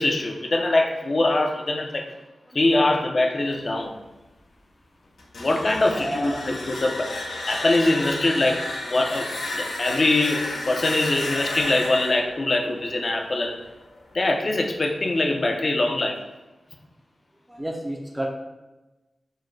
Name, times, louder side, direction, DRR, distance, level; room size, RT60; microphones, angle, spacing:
voice 1, 0.0-2.1 2.5-4.0 5.4-7.2 7.5-13.7 14.1-16.3, left 2 dB, 50° left, 2 dB, 0.6 m, -23 dB
sound 1, 5.2-14.0, left 2 dB, 85° left, 0.7 m, -32 dB
voice 2, 5.9-6.4 17.5-18.3, right 1 dB, 10° right, 0 dB, 0.5 m, -30 dB
4.5 x 2.1 x 4.6 m, 1.1 s
cardioid pair, 70°, 0 cm